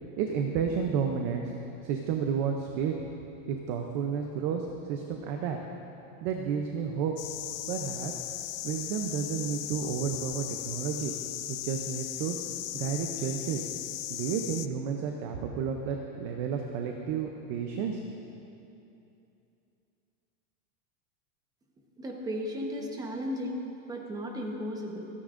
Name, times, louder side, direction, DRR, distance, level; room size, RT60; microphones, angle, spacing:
voice 1, 0.2-1.5 1.8-3.0 3.5-5.6 6.2-7.1 7.7-8.1 8.6-11.1 11.5-12.4 12.7-13.6 14.1-18.0, right 7 dB, 30° right, 3 dB, 0.5 m, -31 dB
sound 1, 7.2-14.7, left 15 dB, 85° left, 0.6 m, -37 dB
voice 2, 22.0-25.1, equal, 10° right, 1 dB, 0.9 m, -35 dB
29.0 x 9.8 x 2.5 m, 2.8 s
supercardioid pair, 160°, 45 cm